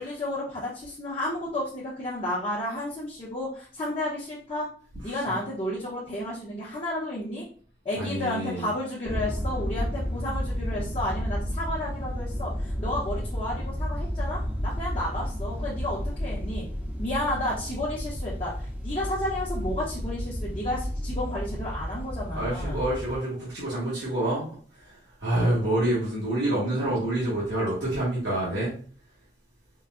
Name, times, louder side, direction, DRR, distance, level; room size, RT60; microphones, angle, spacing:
voice 1, 0.0-4.7 5.0-7.4 7.8-16.6 17.0-22.8, left 1 dB, 30° left, 0.8 m, -32 dB
voice 2, 5.1-5.4 8.0-8.7 22.3-28.7, right 1 dB, 80° right, 1.5 m, -28 dB
sound 1, 9.0-23.2, equal, 10° right, 0.6 m, -32 dB
4.6 x 2.2 x 2.4 m
head